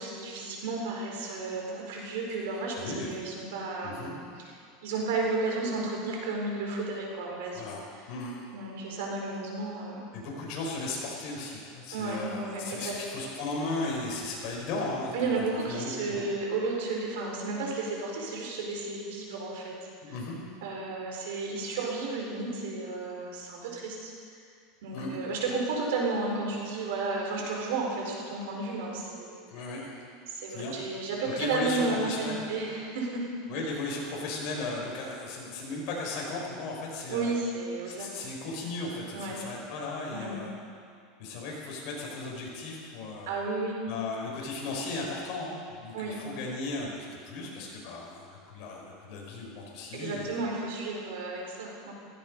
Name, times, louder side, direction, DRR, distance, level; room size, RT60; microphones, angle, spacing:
voice 1, 0.0-4.5 4.8-7.6 8.5-10.1 11.9-12.9 15.1-19.7 20.0-20.1 20.6-24.1 24.8-29.4 30.3-33.3 37.1-38.1 39.1-39.4 40.1-40.4 43.3-43.8 45.9-46.1 49.9-51.9, right 3 dB, 80° right, -1 dB, 4.6 m, -33 dB
voice 2, 2.8-3.1 3.8-4.1 7.5-8.4 10.1-16.3 20.0-20.4 24.9-25.2 29.5-30.0 30.5-30.7 31.3-32.4 33.5-37.3 37.9-40.5 41.2-43.4 43.9-50.4, left 2 dB, 55° left, -2 dB, 5.5 m, -36 dB
16.0 x 16.0 x 5.4 m, 2.3 s
supercardioid pair, 140°, 0 cm